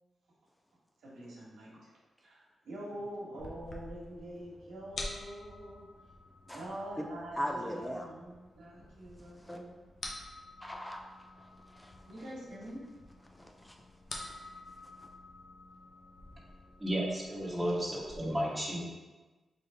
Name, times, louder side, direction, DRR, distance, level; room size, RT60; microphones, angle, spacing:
voice 1, 1.0-1.9 2.2-5.9 6.4-9.8 12.1-12.8, right 1 dB, 85° right, -6 dB, 1.2 m, -45 dB
sound 1, 3.4-18.2, left 2 dB, 65° left, 0.6 m, -49 dB
voice 2, 7.4-8.1 9.2-9.6 10.6-12.3 13.3-13.9 14.4-15.1, equal, 10° left, 2 dB, 0.5 m, -41 dB
voice 3, 16.8-18.8, equal, 20° right, -3 dB, 1.1 m, -33 dB
3.9 x 3.1 x 3.4 m, 1.2 s
cardioid pair, 60°, 0 cm